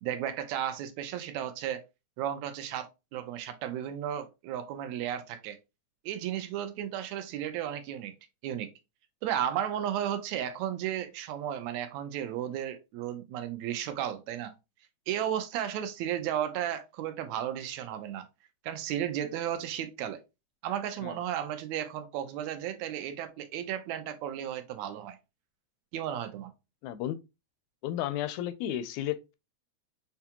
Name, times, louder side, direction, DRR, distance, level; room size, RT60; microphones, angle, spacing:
voice 1, 0.0-1.8 2.2-5.6 6.1-8.1 8.4-8.7 9.2-14.5 15.1-18.3 18.6-20.2 20.6-25.2 25.9-26.5, right 10 dB, 80° right, 1.9 m, -34 dB
voice 2, 26.8-27.2 27.8-29.3, left 12 dB, 85° left, 1.9 m, -33 dB
6.6 x 2.3 x 2.8 m
omnidirectional pair, 3.3 m